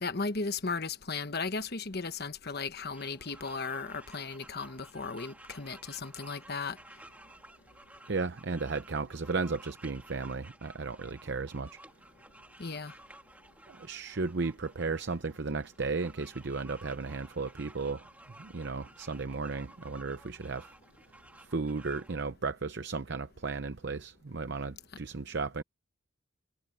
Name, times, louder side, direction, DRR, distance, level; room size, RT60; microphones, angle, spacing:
voice 1, 0.0-6.8 12.6-12.9, left 4 dB, 45° left, 1.2 m, -36 dB
sound 1, 2.9-22.1, right 1 dB, 5° right, 2.3 m, -54 dB
voice 2, 8.1-11.8 13.7-18.1 18.4-20.7 21.4-25.6, right 4 dB, 55° right, 0.7 m, -35 dB
head